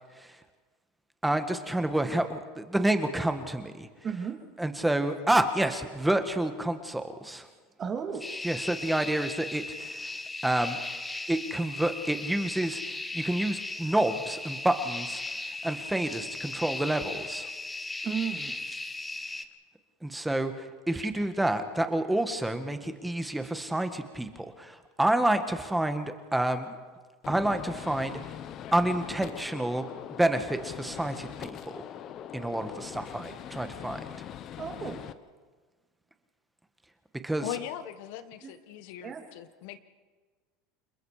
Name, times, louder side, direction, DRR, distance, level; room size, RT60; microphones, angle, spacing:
voice 1, 1.2-3.9 4.6-7.5 8.4-10.1 10.4-10.8 11.3-12.8 13.1-15.2 15.6-17.5 20.0-20.5 20.9-26.7 27.3-28.2 28.7-29.8 30.2-31.8 32.3-34.0 37.2-37.4, right 1 dB, 5° right, 8 dB, 1.6 m, -28 dB
voice 2, 4.0-4.4 7.8-8.4 18.0-18.6 20.9-21.1 34.6-35.0 37.4-37.5 38.4-38.5 39.0-39.2, right 6 dB, 30° right, 4 dB, 3.0 m, -34 dB
sound 1, 8.2-19.5, left 2 dB, 10° left, 1.2 m, -37 dB
Gunshot gunfire, 27.2-35.1, left 10 dB, 40° left, 1.0 m, -42 dB
voice 3, 37.4-39.8, left 11 dB, 70° left, 11 dB, 1.4 m, -39 dB
29.5 x 21.0 x 5.0 m, 1.4 s
supercardioid pair, 130°, 0 cm